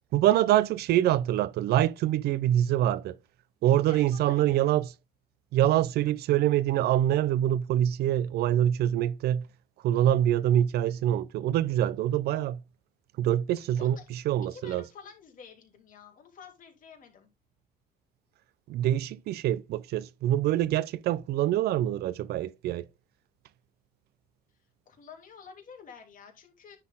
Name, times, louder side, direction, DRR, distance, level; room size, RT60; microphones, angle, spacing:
voice 1, 0.1-3.2 3.6-4.9 5.5-9.5 9.8-12.6 13.2-14.8 18.7-22.9, right 12 dB, 70° right, 0.5 m, -25 dB
voice 2, 3.7-4.8 13.8-14.0 14.5-17.3 24.9-26.8, left 6 dB, 55° left, 2.8 m, -49 dB
9.7 x 4.2 x 3.6 m
cardioid pair, 110°, 17 cm